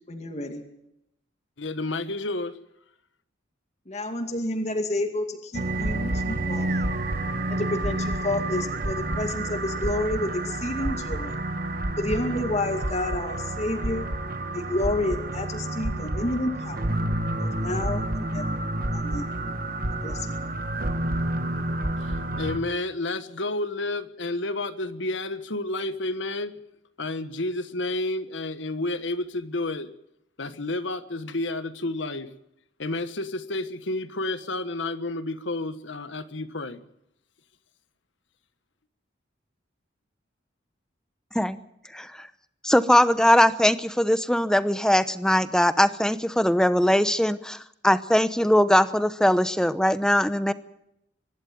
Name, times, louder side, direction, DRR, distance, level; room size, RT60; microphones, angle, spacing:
voice 1, 0.1-0.7 3.9-6.8 7.5-11.4 12.0-14.1 14.5-16.8 17.4-18.6 18.9-19.3 20.0-20.3, left 1 dB, 35° left, 5 dB, 2.2 m, -30 dB
voice 2, 1.6-2.6 22.0-26.6 27.0-29.9 30.4-32.3 32.8-36.8, left 2 dB, 70° left, 12 dB, 1.4 m, -30 dB
sound 1, 5.5-22.6, right 1 dB, 50° right, 1.5 m, -29 dB
voice 3, 41.9-42.3 42.6-50.5, left 1 dB, 5° left, 13 dB, 0.8 m, -21 dB
24.0 x 12.0 x 9.4 m, 0.80 s
head